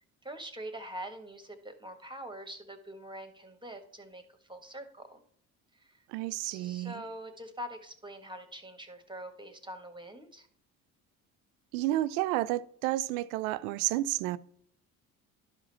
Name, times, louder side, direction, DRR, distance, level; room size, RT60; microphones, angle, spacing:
voice 1, 0.2-4.2 4.5-5.2 5.8-6.0 6.4-10.5, right 1 dB, 10° right, 1.7 m, -44 dB
voice 2, 6.1-6.9 11.7-14.4, right 15 dB, 70° right, 0.5 m, -31 dB
12.0 x 5.0 x 4.2 m
hypercardioid pair, 60°, 42 cm